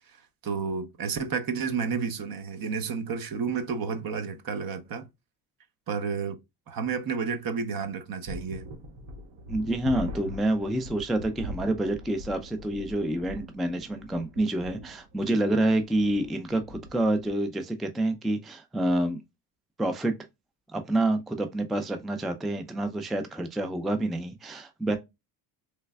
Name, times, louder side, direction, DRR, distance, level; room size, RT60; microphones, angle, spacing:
voice 1, 0.4-5.1 5.9-6.4 6.7-8.7, right 5 dB, 50° right, 0.8 m, -31 dB
sound 1, 8.3-17.3, equal, 80° right, 1.0 m, -42 dB
voice 2, 9.5-19.2 19.8-20.1 20.7-25.0, right 1 dB, ahead, 0.3 m, -28 dB
3.2 x 3.2 x 2.2 m
cardioid pair, 90°, 44 cm